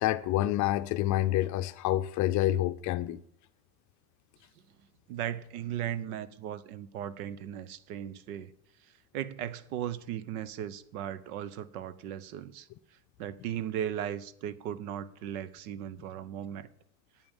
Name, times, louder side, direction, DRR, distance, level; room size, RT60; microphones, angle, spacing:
voice 1, 0.0-3.2, left 14 dB, 40° left, 0.6 m, -28 dB
voice 2, 5.1-8.5 9.1-12.7 13.2-16.7, right 10 dB, 75° right, 1.0 m, -37 dB
8.9 x 8.9 x 7.2 m
supercardioid pair, 120°, 44 cm